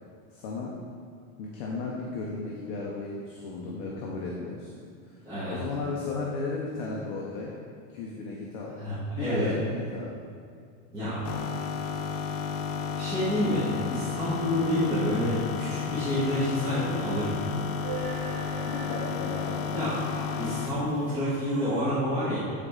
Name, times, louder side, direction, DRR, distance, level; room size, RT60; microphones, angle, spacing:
voice 1, 0.3-0.8 1.4-4.7 5.1-7.6 7.9-8.7 9.1-10.3 18.6-19.9, left 3 dB, 25° left, -3 dB, 0.4 m, -35 dB
voice 2, 5.2-5.6 8.7-9.5 10.9-11.2 12.9-17.5 19.7-22.4, equal, 10° right, -15 dB, 1.6 m, -28 dB
sound 1, 11.2-20.8, left 6 dB, 70° left, 0.6 m, -32 dB
sound 2, 17.2-21.8, right 3 dB, 40° right, 0.7 m, -42 dB
9.8 x 4.1 x 3.7 m, 2.2 s
supercardioid pair, 170°, 41 cm